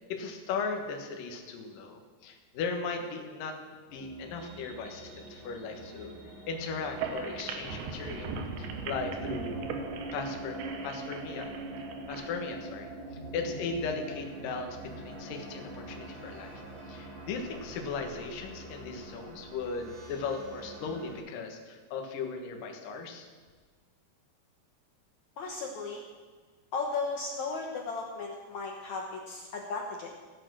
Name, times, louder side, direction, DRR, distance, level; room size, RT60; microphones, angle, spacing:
voice 1, 0.1-3.6 3.9-6.2 6.5-9.6 10.1-11.5 12.1-12.9 13.3-23.3, left 4 dB, 60° left, 3 dB, 2.8 m, -37 dB
sound 1, 3.9-21.2, right 2 dB, 45° right, 4.4 m, -43 dB
sound 2, 6.8-12.3, right 5 dB, 75° right, 3.2 m, -39 dB
voice 2, 25.4-26.0 26.7-30.1, left 4 dB, 85° left, 1 dB, 1.6 m, -35 dB
16.5 x 8.8 x 6.3 m, 1.4 s
omnidirectional pair, 5.1 m